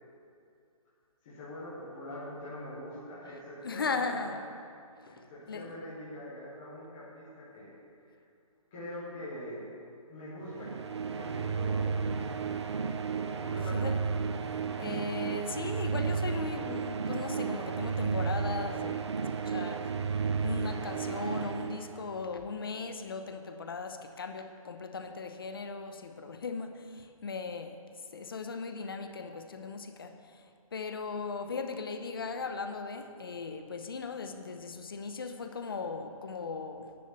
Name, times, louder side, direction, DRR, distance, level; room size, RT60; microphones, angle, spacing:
voice 1, 1.2-4.3 5.1-7.7 8.7-9.7 10.1-10.8 11.1-12.6 13.4-13.8, left 1 dB, 5° left, 0.4 m, -43 dB
voice 2, 3.6-4.5 5.1-5.7 13.4-14.0 14.8-19.9 20.2-27.8 28.1-37.0, left 4 dB, 40° left, 0.8 m, -38 dB
sound 1, 10.5-22.4, right 5 dB, 50° right, 0.7 m, -33 dB
10.0 x 7.5 x 9.3 m
hypercardioid pair, 175°, 19 cm